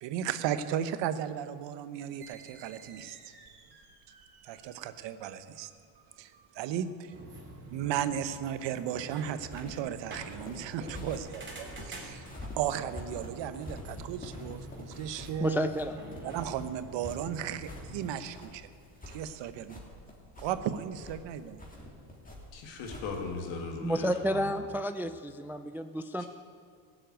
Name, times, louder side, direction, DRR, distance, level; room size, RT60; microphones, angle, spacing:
voice 1, 0.0-3.2 4.4-5.7 6.2-7.1 7.7-12.3 12.6-15.7 16.2-18.7 19.1-19.7 20.4-21.6, right 9 dB, 70° right, 12 dB, 1.0 m, -35 dB
sound 1, 2.2-9.5, right 4 dB, 55° right, 3.3 m, -58 dB
sound 2, 7.1-18.2, right 1 dB, 25° right, 3.2 m, -46 dB
sound 3, 9.4-23.5, left 1 dB, 20° left, 3.1 m, -47 dB
voice 2, 15.4-16.3 23.8-26.2, equal, 5° right, 10 dB, 0.3 m, -31 dB
voice 3, 22.5-24.4, left 3 dB, 75° left, 2 dB, 2.6 m, -38 dB
15.5 x 7.8 x 9.1 m, 2.2 s
cardioid pair, 110°, 46 cm